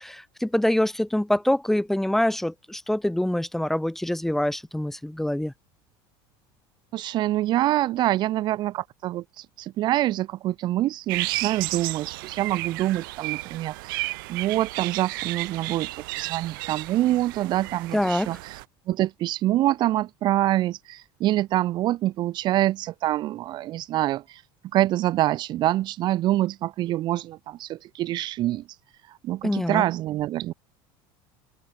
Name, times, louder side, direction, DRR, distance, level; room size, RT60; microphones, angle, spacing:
voice 1, 0.0-5.5 17.9-18.3 29.4-29.9, left 1 dB, 5° left, 1.9 m, -25 dB
voice 2, 6.9-15.9 16.2-18.6 18.9-24.4 24.7-28.6 29.1-30.5, right 14 dB, 45° right, 1.1 m, -25 dB
sound 1, 11.1-18.6, right 23 dB, 90° right, 2.2 m, -33 dB
cardioid pair, 150°, 11 cm